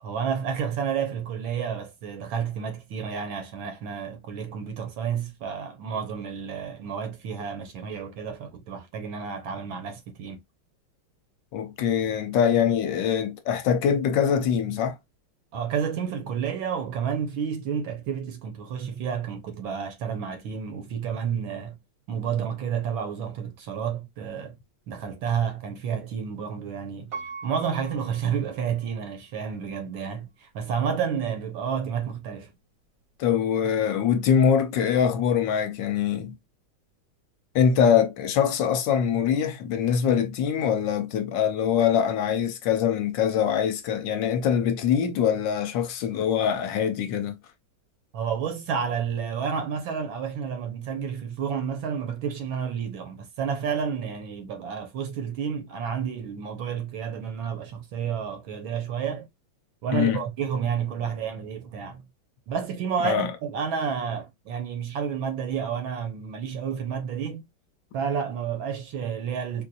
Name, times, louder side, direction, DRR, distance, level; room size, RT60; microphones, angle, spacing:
voice 1, 0.0-10.4 15.5-21.8 22.1-24.6 24.9-27.2 27.4-32.6 48.1-59.3 59.8-62.1 62.5-67.5 67.9-69.7, right 7 dB, 75° right, 1.7 m, -30 dB
voice 2, 11.5-15.0 33.2-36.3 37.5-47.4 59.9-60.2 63.0-63.3, left 8 dB, 70° left, 1.2 m, -23 dB
Piano, 27.1-29.1 29.7-29.8, right 5 dB, 50° right, 1.2 m, -41 dB
4.2 x 2.6 x 2.4 m
omnidirectional pair, 2.2 m